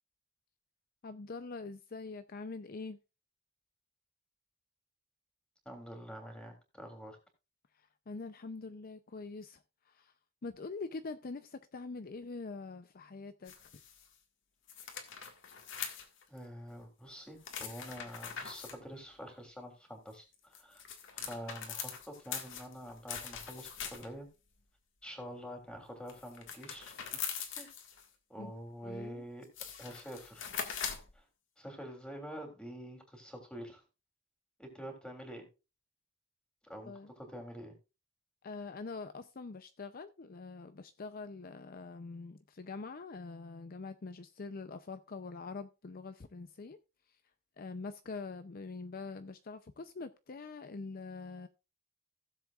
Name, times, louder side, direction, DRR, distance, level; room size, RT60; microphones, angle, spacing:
voice 1, 1.0-3.0 7.7-10.1 10.4-13.5 28.4-28.5 28.8-29.2 36.9-37.1 38.4-46.8 47.6-51.5, left 3 dB, 45° left, 0.5 m, -44 dB
voice 2, 5.6-7.2 16.3-20.8 21.3-24.3 25.0-27.0 27.6-27.7 28.3-29.4 29.8-30.5 31.1-31.2 31.6-33.8 34.6-35.5 36.6-37.7, equal, 5° left, 3.0 m, -46 dB
sound 1, 13.5-14.1 14.7-16.4 17.4-18.8 20.3-24.3 26.1-28.1 29.0-29.1 29.4-31.1, left 7 dB, 65° left, 1.8 m, -42 dB
16.5 x 7.5 x 2.4 m
head